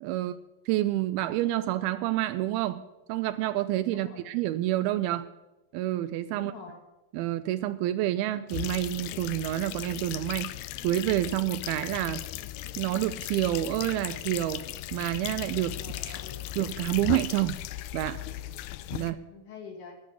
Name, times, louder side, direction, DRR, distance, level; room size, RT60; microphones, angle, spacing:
voice 1, 0.0-0.4 0.7-2.8 3.1-5.3 5.7-6.5 7.1-10.5 10.8-12.2 12.8-14.7 14.9-15.8 16.1-16.2 16.6-17.6 17.9-18.2 18.9-19.2, right 14 dB, 85° right, 11 dB, 2.4 m, -28 dB
voice 2, 3.9-4.3 6.3-6.8 15.8-16.4 18.9-19.9, left 5 dB, 55° left, 1 dB, 3.1 m, -46 dB
sound 1, 8.5-19.1, left 14 dB, 90° left, 1.8 m, -37 dB
12.5 x 6.5 x 9.4 m, 1.0 s
omnidirectional pair, 4.3 m